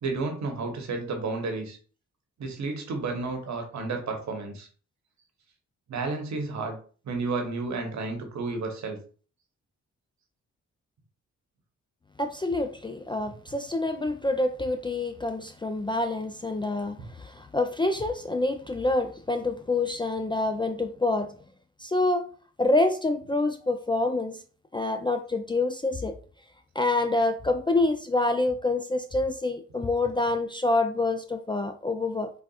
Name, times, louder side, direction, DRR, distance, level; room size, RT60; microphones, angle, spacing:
voice 1, 0.0-1.8 2.4-4.7 5.9-6.8 7.0-9.0, right 3 dB, 65° right, 1.0 m, -31 dB
voice 2, 12.2-21.3 21.8-22.3 22.6-24.4 24.7-26.1 26.8-32.3, left 2 dB, 15° left, 0.3 m, -27 dB
4.0 x 2.4 x 2.3 m
supercardioid pair, 60°, 31 cm